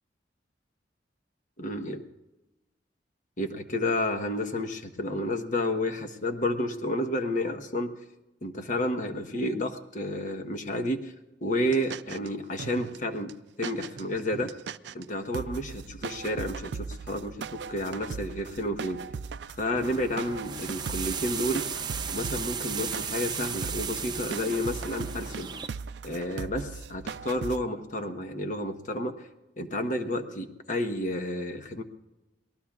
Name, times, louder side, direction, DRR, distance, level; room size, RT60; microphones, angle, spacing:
voice 1, 1.6-2.0 3.4-7.9 8.4-11.1 11.4-13.3 13.6-14.5 14.9-19.0 19.6-21.6 22.1-25.5 26.0-29.1 29.6-31.8, left 1 dB, 45° left, 6 dB, 1.2 m, -31 dB
sound 1, 11.6-12.3 12.6-13.0 13.3-13.4 13.6-15.0 15.3-27.6, right 5 dB, 70° right, 0.4 m, -39 dB
sound 2, 19.8-25.7, right 7 dB, 25° right, 0.6 m, -35 dB
25.0 x 19.0 x 2.4 m, 0.99 s
head